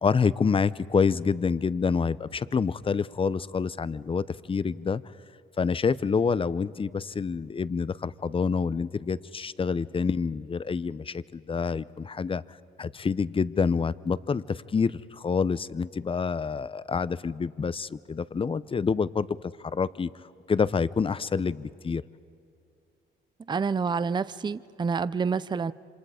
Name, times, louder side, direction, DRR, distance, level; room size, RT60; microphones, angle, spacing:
voice 1, 0.0-5.0 5.6-12.4 12.8-19.3 19.7-20.1 20.5-22.0, left 5 dB, 25° left, 17 dB, 0.6 m, -27 dB
voice 2, 23.5-25.7, right 5 dB, 20° right, 16 dB, 0.5 m, -28 dB
27.5 x 26.0 x 5.0 m, 2.7 s
cardioid pair, 90°, 20 cm